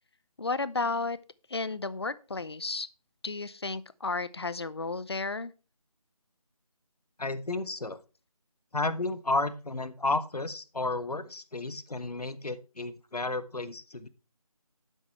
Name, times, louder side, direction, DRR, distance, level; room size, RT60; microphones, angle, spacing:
voice 1, 0.4-1.2 1.5-2.9 3.2-5.5, left 3 dB, 45° left, 0.7 m, -33 dB
voice 2, 7.2-8.0 8.7-14.1, left 2 dB, 90° left, 1.5 m, -32 dB
11.5 x 8.2 x 3.2 m
figure-of-eight pair, 170°, 19 cm